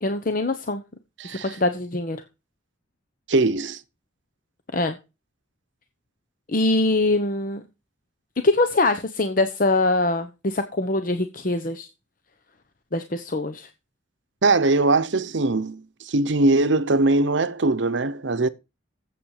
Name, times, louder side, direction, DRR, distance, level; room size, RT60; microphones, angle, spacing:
voice 1, 0.0-0.8 1.3-2.2 4.7-5.0 6.5-7.6 8.4-11.9 12.9-13.7, left 2 dB, 45° left, 0.9 m, -23 dB
voice 2, 1.2-1.6 3.3-3.8 14.4-18.5, right 2 dB, 65° right, 0.8 m, -21 dB
8.9 x 7.9 x 6.5 m
head